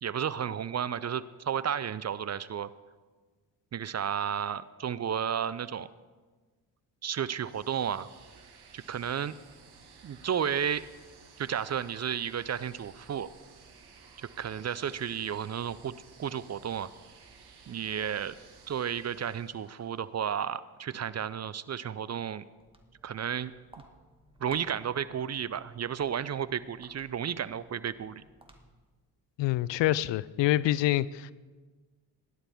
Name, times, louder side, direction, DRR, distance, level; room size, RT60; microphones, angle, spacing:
voice 1, 0.0-2.7 3.7-5.9 7.0-8.1 8.7-9.3 10.0-10.8 11.4-13.3 14.2-16.9 17.7-18.3 18.7-22.4 23.0-23.5 24.4-28.2, right 8 dB, 35° right, 17 dB, 0.6 m, -32 dB
sound 1, 7.3-20.1, right 5 dB, 50° right, 1.8 m, -55 dB
Walk footsteps, 22.5-29.0, right 1 dB, 10° right, 1.8 m, -58 dB
voice 2, 29.4-31.3, left 15 dB, 65° left, 20 dB, 0.5 m, -26 dB
17.5 x 11.0 x 3.6 m, 1.3 s
hypercardioid pair, 45°, 49 cm